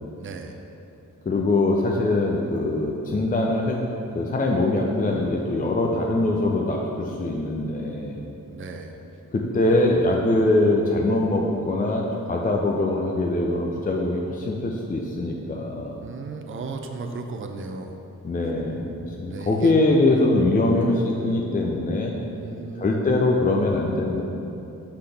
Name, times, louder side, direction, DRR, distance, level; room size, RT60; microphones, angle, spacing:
voice 1, 0.2-0.6 5.1-5.6 8.5-9.0 16.0-18.0 19.3-19.7 20.3-20.4 22.3-23.0, right 4 dB, 40° right, 4 dB, 0.5 m, -36 dB
voice 2, 1.3-3.8 4.2-8.2 9.3-16.0 18.2-22.2 22.8-24.2, left 2 dB, 25° left, 0 dB, 0.5 m, -23 dB
6.0 x 5.6 x 3.4 m, 3.0 s
cardioid pair, 85°, 32 cm